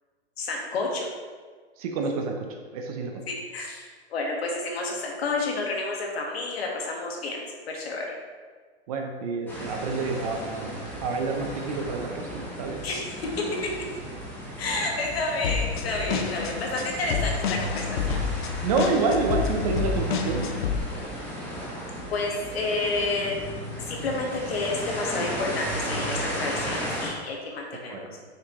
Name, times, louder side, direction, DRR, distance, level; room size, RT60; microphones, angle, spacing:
voice 1, 0.4-1.1 3.3-8.1 12.8-13.4 14.6-18.2 22.1-23.4 23.8-28.2, left 3 dB, 65° left, -1 dB, 1.7 m, -30 dB
voice 2, 1.8-2.4 2.7-3.2 8.9-10.7 11.0-12.8 16.1-16.2 18.6-20.4 27.9-28.0, right 4 dB, 35° right, 3 dB, 0.7 m, -28 dB
sound 1, 9.5-27.1, equal, 5° left, 1.0 m, -35 dB
sound 2, 15.4-20.8, left 7 dB, 50° left, 0.6 m, -29 dB
6.6 x 5.8 x 3.1 m, 1.5 s
hypercardioid pair, 155°, 33 cm